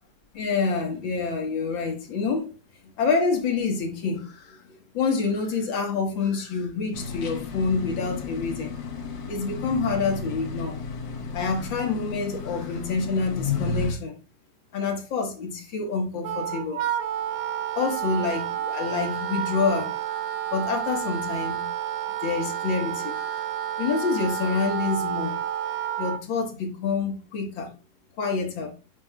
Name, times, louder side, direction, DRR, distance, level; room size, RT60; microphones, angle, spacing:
voice 1, 0.3-2.5 3.0-8.7 9.3-10.8 11.3-14.1 14.7-16.8 17.7-20.2 20.5-21.7 22.2-23.5 23.8-25.4 26.0-27.7 28.2-28.7, left 4 dB, 90° left, 2.1 m, -27 dB
sound 1, 6.9-13.9, left 4 dB, 75° left, 1.6 m, -33 dB
Wind instrument woodwind instrument, 16.2-26.2, right 10 dB, 70° right, 1.1 m, -30 dB
8.2 x 5.8 x 2.2 m
omnidirectional pair, 2.0 m